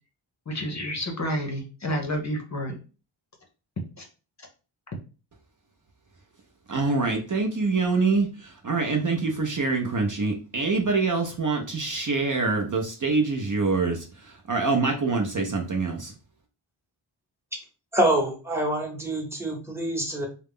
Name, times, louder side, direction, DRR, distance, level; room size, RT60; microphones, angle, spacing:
voice 1, 0.5-2.7 4.0-4.1, equal, 35° left, 2 dB, 0.7 m, -30 dB
voice 2, 6.7-8.3 8.6-14.0 14.5-16.1, right 3 dB, 40° right, 2 dB, 0.6 m, -25 dB
voice 3, 17.9-20.3, right 1 dB, 5° right, 1 dB, 0.9 m, -26 dB
2.3 x 2.0 x 3.5 m, 0.34 s
cardioid pair, 50°, 49 cm